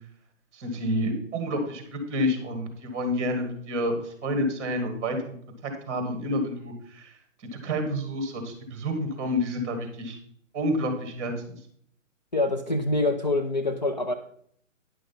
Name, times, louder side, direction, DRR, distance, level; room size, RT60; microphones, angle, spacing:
voice 1, 0.5-5.4 5.6-7.2 7.5-10.2 10.5-11.6, equal, 20° right, 5 dB, 1.8 m, -29 dB
voice 2, 12.3-14.1, left 2 dB, 35° left, 5 dB, 0.4 m, -25 dB
10.0 x 6.1 x 4.2 m, 0.63 s
hypercardioid pair, 160°, 39 cm